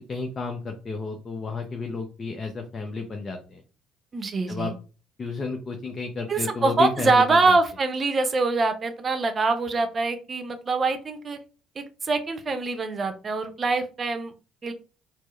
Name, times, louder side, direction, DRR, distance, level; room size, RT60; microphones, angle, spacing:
voice 1, 0.1-3.6 4.5-4.7 5.2-7.6, left 4 dB, 35° left, 4 dB, 0.6 m, -32 dB
voice 2, 4.1-4.7 6.3-11.4 11.8-14.3 14.6-14.7, right 3 dB, 40° right, 8 dB, 0.7 m, -24 dB
4.3 x 2.1 x 3.1 m, 0.35 s
hypercardioid pair, 55°, 0 cm